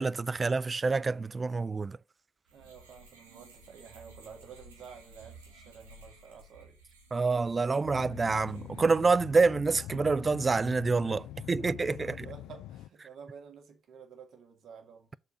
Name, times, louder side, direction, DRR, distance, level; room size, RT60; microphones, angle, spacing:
voice 1, 0.0-2.0 7.1-12.3, right 4 dB, 35° right, 0.4 m, -27 dB
voice 2, 2.5-6.9 7.7-8.1 11.3-11.4 11.7-15.2, right 6 dB, 60° right, 2.2 m, -51 dB
sound 1, 2.5-9.1, right 2 dB, 90° right, 1.8 m, -55 dB
sound 2, 7.8-12.9, left 13 dB, 70° left, 0.4 m, -44 dB
6.8 x 4.6 x 6.1 m
hypercardioid pair, 45°, 0 cm